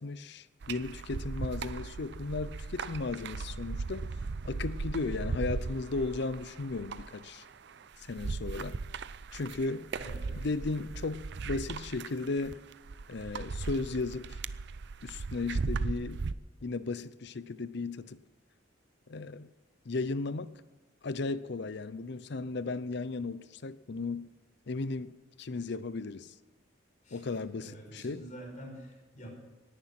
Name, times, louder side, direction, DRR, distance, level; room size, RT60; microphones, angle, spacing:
voice 1, 0.0-4.1 4.4-7.4 8.0-8.8 9.3-9.9 10.3-12.6 13.1-14.4 15.0-16.2 16.6-18.2 19.1-19.5 19.9-20.5 21.0-24.3 24.7-26.3 27.1-28.2, left 3 dB, 60° left, 0.6 m, -35 dB
sound 1, 0.6-16.3, right 4 dB, 65° right, 0.5 m, -37 dB
voice 2, 10.0-10.5 27.0-27.2 27.6-29.3, equal, 40° left, 5.1 m, -46 dB
18.5 x 10.5 x 5.9 m
head